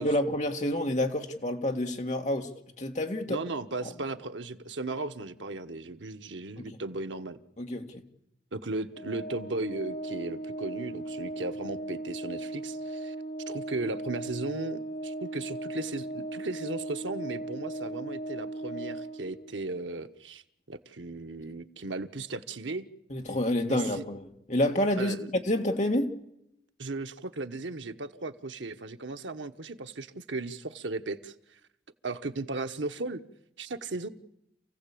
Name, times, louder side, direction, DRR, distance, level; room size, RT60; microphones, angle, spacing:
voice 1, 0.0-2.5 2.8-3.4 7.6-8.0 23.1-24.2 24.5-25.2 25.5-26.1, left 1 dB, 40° left, 1.9 m, -28 dB
voice 2, 3.3-7.4 8.5-13.1 13.5-20.4 20.7-22.8 23.7-24.0 25.0-25.3 26.8-31.6 32.0-33.2 33.6-34.1, right 3 dB, 90° right, 1.2 m, -36 dB
Organ, 8.9-19.6, right 2 dB, 55° left, 3.5 m, -37 dB
28.0 x 15.5 x 8.5 m
head